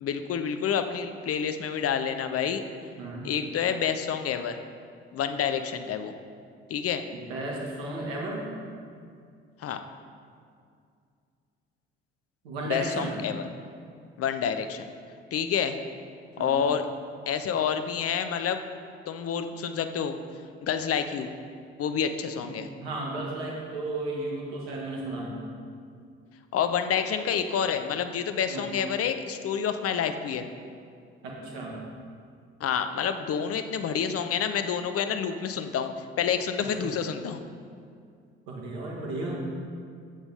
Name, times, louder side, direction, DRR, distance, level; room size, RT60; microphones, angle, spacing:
voice 1, 0.0-2.6 3.2-4.6 5.1-6.1 6.7-7.0 9.6-9.8 12.6-13.4 14.2-14.9 15.3-15.8 16.4-16.9 17.3-18.6 19.1-20.2 20.6-21.3 21.8-22.7 26.5-30.5 32.6-35.9 36.2-37.4, left 7 dB, 45° left, 9 dB, 0.7 m, -28 dB
voice 2, 3.0-3.3 7.1-8.5 12.4-13.1 16.4-16.6 22.4-22.5 22.8-25.4 28.5-28.7 31.2-31.8 36.6-36.9 38.5-39.4, right 2 dB, 75° right, -3 dB, 1.8 m, -34 dB
11.0 x 8.1 x 3.5 m, 2.3 s
figure-of-eight pair, 45°, 32 cm